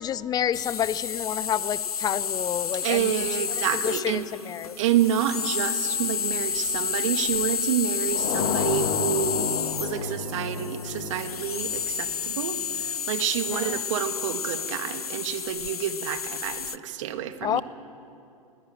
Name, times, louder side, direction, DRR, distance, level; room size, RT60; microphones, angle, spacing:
voice 1, 0.0-3.3 3.7-4.8 13.5-13.8 17.4-17.6, left 10 dB, 20° left, 19 dB, 0.6 m, -29 dB
sound 1, 0.5-16.8, left 7 dB, 90° left, 0.5 m, -30 dB
voice 2, 2.8-4.2 4.8-9.5 9.8-17.6, right 10 dB, 60° right, 9 dB, 1.7 m, -28 dB
sound 2, 8.1-12.8, left 6 dB, 60° left, 1.6 m, -32 dB
21.5 x 17.0 x 9.2 m, 2.8 s
hypercardioid pair, 100°, 18 cm